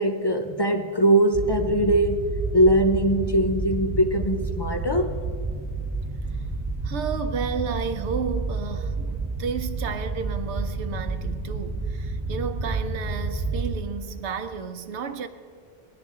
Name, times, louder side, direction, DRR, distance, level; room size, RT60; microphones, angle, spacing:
voice 1, 0.0-5.1, right 1 dB, 40° left, 0.3 m, -21 dB
sound 1, 1.3-13.7, right 3 dB, 10° right, 0.6 m, -30 dB
voice 2, 6.8-15.3, right 6 dB, 85° right, 1.0 m, -32 dB
18.0 x 10.5 x 3.6 m
omnidirectional pair, 1.1 m